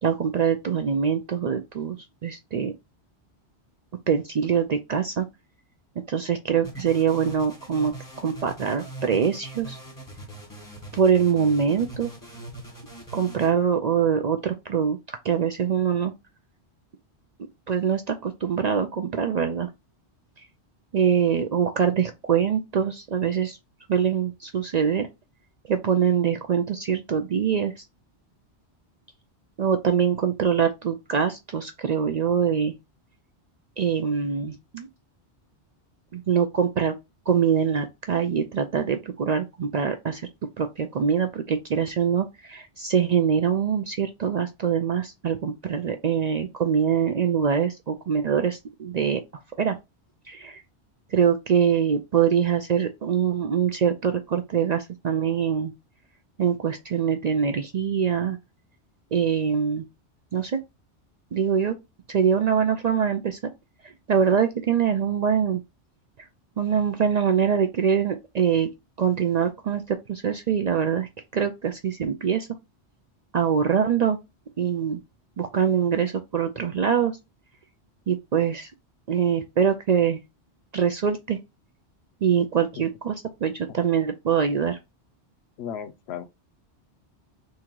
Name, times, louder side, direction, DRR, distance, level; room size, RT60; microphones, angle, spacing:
voice 1, 0.0-2.7 4.1-5.3 6.1-9.8 10.9-12.1 13.1-16.1 17.7-19.7 20.9-23.6 23.9-25.1 25.7-27.9 29.6-32.7 33.8-34.9 36.1-37.0 37.3-40.2 40.6-49.2 49.6-49.8 50.3-50.6 51.1-55.7 56.4-58.4 59.1-59.8 60.3-60.6 61.3-61.7 62.1-63.4 63.8-65.6 66.6-68.7 69.0-72.5 73.3-74.2 74.6-75.0 75.4-77.2 78.1-78.7 79.1-80.2 80.7-81.4 82.2-83.2 83.4-84.8, right 7 dB, 60° right, 0.4 m, -24 dB
sound 1, 6.6-13.5, right 2 dB, 15° left, 1.3 m, -41 dB
voice 2, 85.6-86.3, left 8 dB, 70° left, 0.8 m, -34 dB
3.7 x 2.7 x 4.4 m
omnidirectional pair, 1.2 m